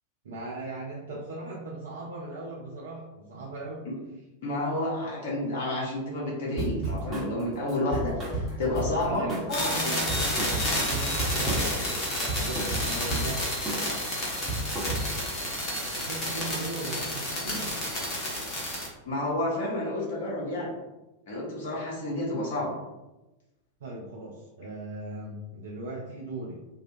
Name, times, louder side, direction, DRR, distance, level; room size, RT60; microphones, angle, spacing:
voice 1, 0.2-3.8 8.9-13.6 15.9-17.8 23.8-26.6, right 2 dB, 65° right, -5 dB, 0.4 m, -38 dB
voice 2, 4.4-9.9 19.1-20.7 21.3-22.7, left 1 dB, 55° left, -4 dB, 0.6 m, -30 dB
sound 1, 6.6-7.3 7.7-9.0 9.3-9.6 9.9-11.8 12.0-13.3 13.7-13.9 14.2-15.3, right 2 dB, 15° right, 0.9 m, -31 dB
sound 2, 9.5-18.9, left 1 dB, 30° left, 0.9 m, -30 dB
2.6 x 2.2 x 2.5 m, 1.0 s
figure-of-eight pair, 90°, 0 cm